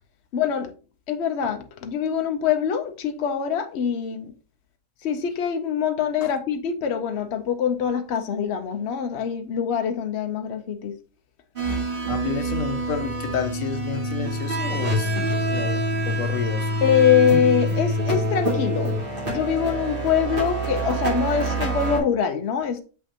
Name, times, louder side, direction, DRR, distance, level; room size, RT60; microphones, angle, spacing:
voice 1, 0.3-0.7 1.1-4.3 5.0-11.0 16.8-18.9 19.3-22.8, left 8 dB, 60° left, 1.0 m, -24 dB
sound 1, 11.6-22.0, right 1 dB, 45° right, 2.3 m, -26 dB
voice 2, 12.1-15.2 15.5-16.7, left 6 dB, 90° left, 1.2 m, -30 dB
7.2 x 5.5 x 2.8 m
omnidirectional pair, 1.3 m